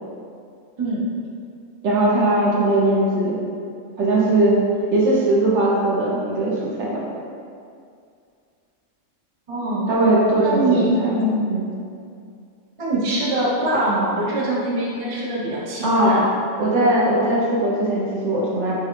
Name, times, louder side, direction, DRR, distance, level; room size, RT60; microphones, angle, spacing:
voice 1, 1.8-3.4 4.0-4.6 4.9-7.0 9.9-11.2 11.5-11.7 15.8-16.2 16.6-18.8, right 1 dB, 65° right, -6 dB, 1.0 m, -19 dB
voice 2, 9.5-9.9 10.4-11.4 12.8-16.3, right 1 dB, 30° right, -6 dB, 0.6 m, -23 dB
5.7 x 2.3 x 3.0 m, 2.3 s
omnidirectional pair, 1.4 m